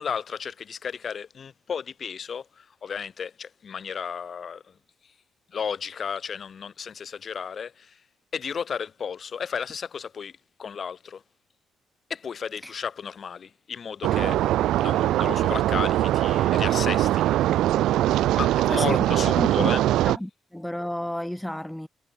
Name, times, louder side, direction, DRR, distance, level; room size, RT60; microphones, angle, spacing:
voice 1, 0.0-4.6 5.5-7.9 8.3-10.3 10.6-11.2 12.1-14.4 14.8-17.2 18.4-19.8, left 6 dB, 50° left, 3.2 m, -33 dB
sound 1, 14.0-20.2, right 14 dB, 85° right, 0.7 m, -22 dB
voice 2, 18.7-19.7 20.0-21.9, left 1 dB, 5° left, 4.2 m, -32 dB
cardioid pair, 90°, 0 cm